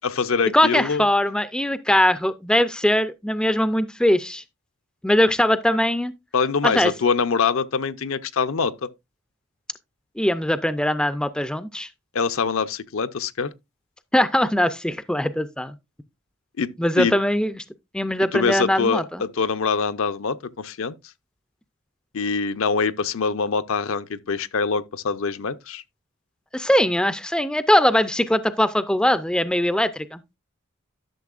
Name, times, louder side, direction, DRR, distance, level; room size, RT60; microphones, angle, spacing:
voice 1, 0.0-1.0 6.3-8.9 12.1-13.5 16.6-17.1 18.2-20.9 22.1-25.8, left 5 dB, 70° left, 0.6 m, -24 dB
voice 2, 0.5-4.4 5.0-6.1 6.6-6.9 10.2-11.9 14.1-15.7 16.8-17.5 17.9-19.2 26.5-30.2, left 1 dB, 5° left, 0.4 m, -21 dB
11.5 x 6.7 x 2.4 m
head